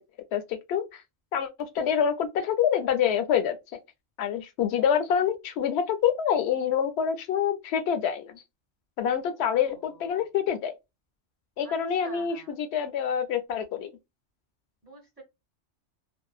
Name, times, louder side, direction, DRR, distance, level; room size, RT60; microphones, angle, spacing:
voice 1, 0.3-1.0 1.3-3.6 4.2-8.4 9.0-10.7 11.6-13.9, left 8 dB, 70° left, 0.8 m, -26 dB
voice 2, 9.3-10.3 11.6-11.7 12.0-12.5 14.8-15.2, right 2 dB, 10° right, 0.5 m, -49 dB
2.6 x 2.2 x 2.3 m
omnidirectional pair, 1.2 m